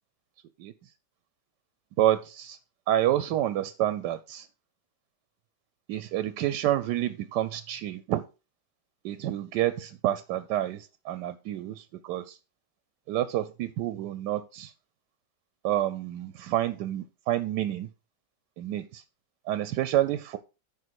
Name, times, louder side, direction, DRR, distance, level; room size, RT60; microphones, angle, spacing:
voice 1, 2.0-2.6 2.9-4.5 5.9-8.2 9.0-12.4 13.1-14.7 15.6-17.9 18.6-19.0 19.5-20.4, right 13 dB, 85° right, 1.2 m, -28 dB
9.5 x 5.4 x 4.6 m
omnidirectional pair, 1.8 m